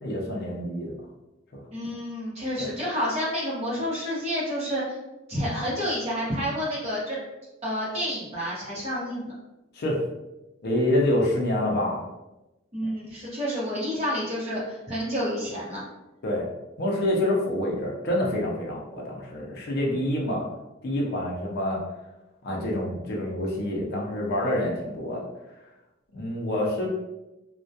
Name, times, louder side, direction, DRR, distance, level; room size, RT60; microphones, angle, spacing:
voice 1, 0.0-0.9 1.5-1.6 2.6-2.7 9.7-10.0 10.6-12.0 16.2-16.5 16.8-20.5 20.8-21.8 22.4-25.2 26.1-26.9, left 1 dB, 50° left, -2 dB, 0.5 m, -27 dB
voice 2, 1.7-5.0 5.3-7.2 7.6-9.3 12.7-15.8, equal, 30° right, -6 dB, 0.8 m, -29 dB
2.2 x 2.1 x 2.6 m, 1.0 s
head